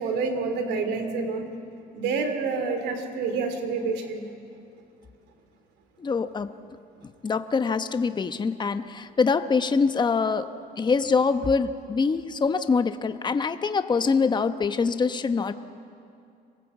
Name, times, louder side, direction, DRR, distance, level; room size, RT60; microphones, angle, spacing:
voice 1, 0.0-1.5 1.9-4.3, right 4 dB, 85° right, 7 dB, 2.8 m, -28 dB
voice 2, 6.0-6.5 7.2-15.5, left 5 dB, 25° left, 10 dB, 1.0 m, -24 dB
26.5 x 18.5 x 8.2 m, 2.5 s
cardioid pair, 110°, 17 cm